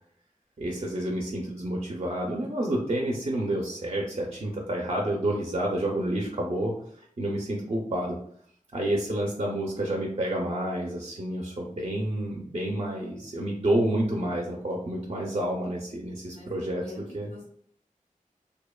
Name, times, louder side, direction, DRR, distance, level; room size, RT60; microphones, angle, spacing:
voice 1, 0.6-8.2 8.7-16.8 17.1-17.3, right 1 dB, 45° right, -1 dB, 0.5 m, -29 dB
voice 2, 16.8-17.4, left 2 dB, 85° left, -5 dB, 0.7 m, -44 dB
2.7 x 2.1 x 2.2 m, 0.64 s
wide cardioid pair, 40°, 14 cm